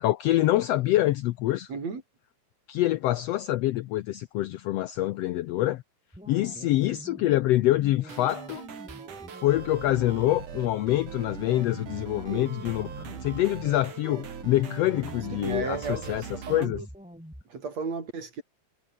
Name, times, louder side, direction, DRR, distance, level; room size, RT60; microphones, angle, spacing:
voice 1, 0.0-1.7 2.7-5.8 6.3-8.6 9.4-16.2 16.5-16.8, left 15 dB, 80° left, 1.5 m, -25 dB
voice 2, 1.7-2.0 12.3-12.5 14.1-14.2 15.4-16.9 17.5-18.4, right 4 dB, 60° right, 5.5 m, -34 dB
sound 1, 6.1-17.4, equal, ahead, 5.5 m, -47 dB
sound 2, 8.1-16.7, right 7 dB, 85° right, 4.5 m, -41 dB
omnidirectional pair, 3.5 m